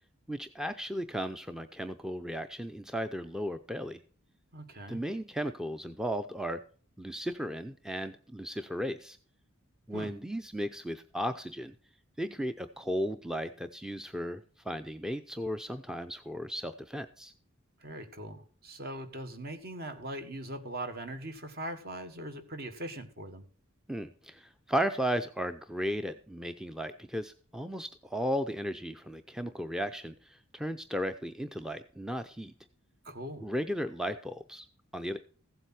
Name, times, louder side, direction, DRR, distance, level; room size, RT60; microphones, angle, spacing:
voice 1, 0.3-4.0 4.9-6.6 7.0-9.2 9.9-11.7 12.2-17.3 23.9-32.5 33.4-34.7 34.9-35.2, equal, 5° right, 9 dB, 0.5 m, -35 dB
voice 2, 4.5-5.0 9.9-10.1 17.8-23.4 33.0-33.5, right 1 dB, 50° right, 8 dB, 1.5 m, -41 dB
15.5 x 7.9 x 4.3 m, 0.43 s
head